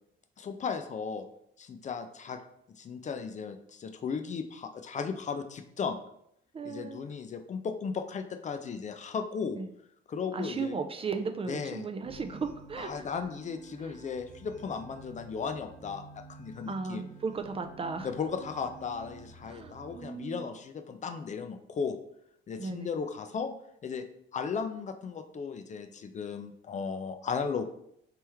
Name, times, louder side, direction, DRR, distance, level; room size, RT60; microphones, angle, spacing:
voice 1, 0.4-1.2 1.6-2.4 2.8-6.0 6.6-9.6 10.1-10.8 11.5-11.9 12.8-17.0 18.0-22.0 22.5-23.5 23.8-24.0 24.3-27.6, left 5 dB, 40° left, 7 dB, 0.4 m, -36 dB
voice 2, 6.5-7.1 9.5-9.7 10.3-13.2 13.8-14.0 16.6-18.1 19.4-20.5 22.6-22.9, right 4 dB, 30° right, 6 dB, 0.3 m, -36 dB
sound 1, 12.0-20.0, right 3 dB, 90° right, 0.8 m, -51 dB
3.3 x 3.0 x 3.4 m, 0.72 s
cardioid pair, 90°, 20 cm